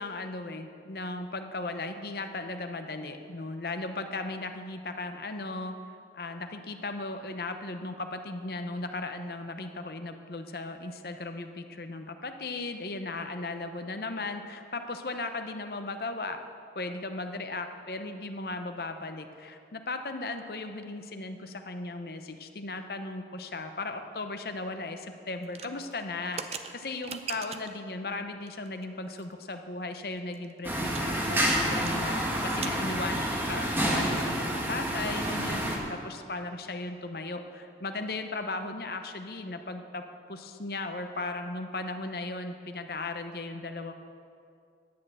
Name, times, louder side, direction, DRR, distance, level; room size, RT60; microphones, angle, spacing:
voice 1, 0.0-5.7 6.1-16.4 16.7-32.2 32.4-43.9, left 2 dB, 60° left, 7 dB, 0.7 m, -36 dB
sound 1, 25.4-27.8 28.5-28.8 29.2-29.3 29.5-29.6 30.0-32.0 32.3-32.8, right 6 dB, 35° right, 0.5 m, -41 dB
sound 2, 30.6-35.8, equal, 15° right, 1.2 m, -29 dB
10.5 x 6.5 x 8.8 m, 2.4 s
head